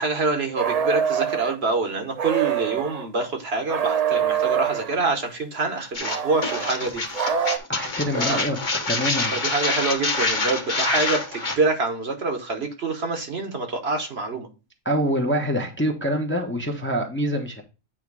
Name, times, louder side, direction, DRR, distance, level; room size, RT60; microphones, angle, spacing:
voice 1, 0.0-7.0 8.2-8.4 9.3-14.5, right 3 dB, 55° right, 4 dB, 1.3 m, -26 dB
sound 1, 0.6-1.6 2.2-3.1 3.7-5.0 6.0-7.6, right 8 dB, 85° right, 0.3 m, -25 dB
sound 2, 5.9-11.6, left 3 dB, 40° left, 1.2 m, -26 dB
voice 2, 7.7-8.6 8.9-9.4 14.8-17.6, equal, 10° left, 2 dB, 0.8 m, -25 dB
8.7 x 3.2 x 4.7 m, 0.31 s
omnidirectional pair, 1.4 m